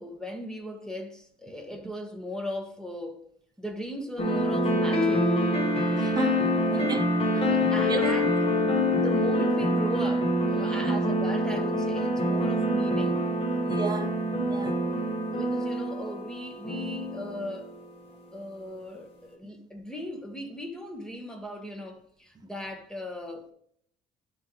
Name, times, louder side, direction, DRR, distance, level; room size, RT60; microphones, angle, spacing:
voice 1, 0.0-3.2 3.6-5.3 6.7-6.9 7.5-13.3 15.1-17.7 18.3-23.5, equal, 5° left, 1.2 m, -38 dB
sound 1, 4.2-17.7, equal, 35° left, 1.4 m, -26 dB
voice 2, 6.0-6.4 6.7-7.0 7.3-7.5 7.8-8.1 10.6-11.0 13.7-14.8, right 5 dB, 25° right, 0.6 m, -33 dB
10.5 x 3.7 x 3.1 m
cardioid pair, 110°, 17 cm